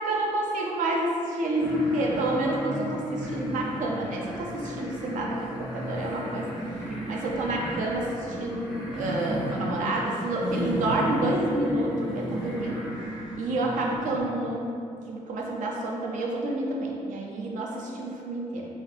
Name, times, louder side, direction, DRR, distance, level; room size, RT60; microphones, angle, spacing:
voice 1, 0.0-6.8 7.1-12.8 13.4-14.7 15.1-18.7, right 1 dB, 75° right, -1 dB, 0.4 m, -29 dB
sound 1, 1.6-14.2, equal, 5° right, 0.5 m, -34 dB
2.7 x 2.1 x 2.6 m, 2.6 s
cardioid pair, 90°, 13 cm